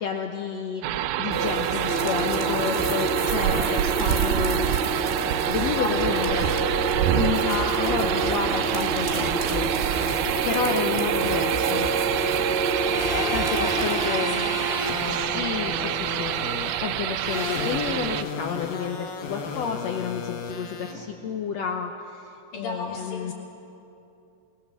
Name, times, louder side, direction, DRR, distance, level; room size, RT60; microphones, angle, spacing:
voice 1, 0.0-4.7 5.5-6.6 7.1-9.7 10.4-11.9 13.0-14.4 15.0-23.3, left 7 dB, 85° left, 3 dB, 1.5 m, -31 dB
sound 1, 0.8-18.2, right 13 dB, 85° right, 2.6 m, -27 dB
sound 2, 1.3-14.1, right 3 dB, 25° right, 1.5 m, -27 dB
voice 2, 1.7-2.9 5.7-6.4 7.4-8.4 10.4-11.0 12.8-15.3 17.7-17.8 20.6-21.0 22.5-23.3, left 4 dB, 50° left, -4 dB, 5.0 m, -36 dB
sound 3, 12.8-20.9, left 3 dB, 70° left, 3.3 m, -33 dB
22.0 x 19.5 x 7.7 m, 2.7 s
omnidirectional pair, 4.4 m